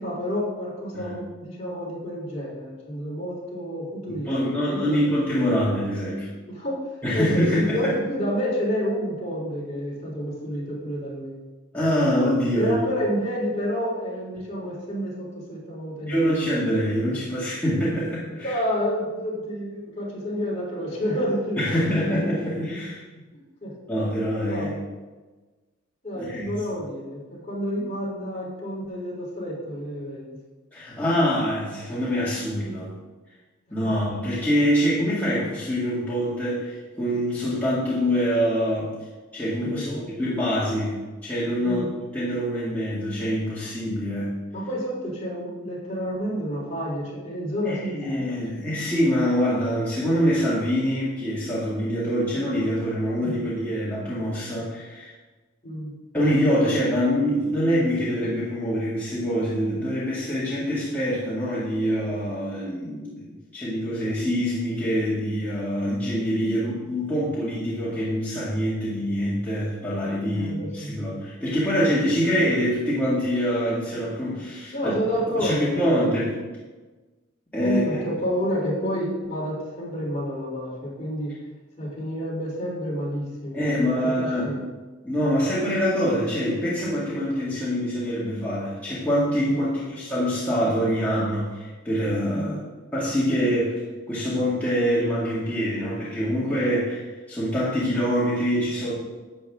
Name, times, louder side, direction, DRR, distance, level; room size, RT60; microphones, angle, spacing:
voice 1, 0.0-5.0 6.5-6.8 7.1-11.3 12.5-16.2 18.4-21.8 23.6-23.7 24.4-24.8 26.0-30.3 39.6-40.1 41.6-41.9 44.5-48.4 55.6-55.9 70.3-71.0 74.7-76.0 77.6-81.3 81.8-84.6 89.4-89.9 92.4-92.6, equal, 30° left, -5 dB, 3.4 m, -29 dB
voice 2, 4.2-6.3 7.0-7.9 11.7-12.8 16.1-18.6 21.6-23.0 23.9-24.7 26.1-26.6 30.7-33.0 33.7-38.9 39.3-41.8 42.1-44.4 47.7-55.1 56.1-63.3 63.5-74.9 75.4-76.3 77.5-77.8 83.5-84.5 85.0-92.6 92.9-93.8 94.1-98.9, equal, 10° left, -10 dB, 2.0 m, -25 dB
11.5 x 7.9 x 3.6 m, 1.2 s
head